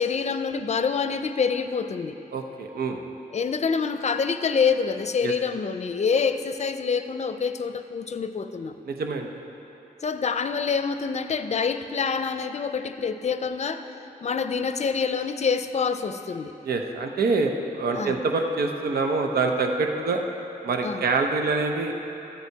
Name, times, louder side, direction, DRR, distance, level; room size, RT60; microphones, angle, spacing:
voice 1, 0.0-2.2 3.3-8.8 10.0-14.0 14.2-16.5 17.9-18.2 20.8-21.1, left 5 dB, 45° left, 10 dB, 0.6 m, -26 dB
voice 2, 2.3-3.0 5.2-5.3 8.9-9.3 16.6-20.2 20.6-21.9, right 3 dB, 75° right, 3 dB, 0.8 m, -25 dB
13.0 x 8.1 x 4.6 m, 3.0 s
cardioid pair, 70°, 16 cm